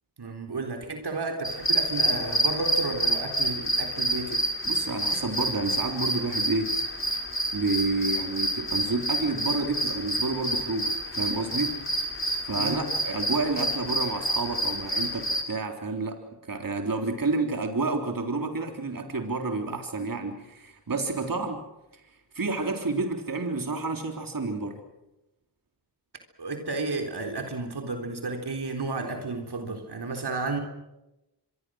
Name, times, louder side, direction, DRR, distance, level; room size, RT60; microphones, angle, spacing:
voice 1, 0.2-4.5 12.5-12.9 26.4-30.6, right 3 dB, 70° right, 4 dB, 3.9 m, -32 dB
sound 1, 1.4-15.4, right 1 dB, 30° left, 4.8 m, -28 dB
voice 2, 4.6-6.8 7.5-11.8 12.4-21.7 21.9-22.0 22.3-24.8, right 3 dB, 50° right, 4 dB, 3.8 m, -30 dB
26.0 x 23.0 x 6.4 m, 0.93 s
cardioid pair, 40°, 41 cm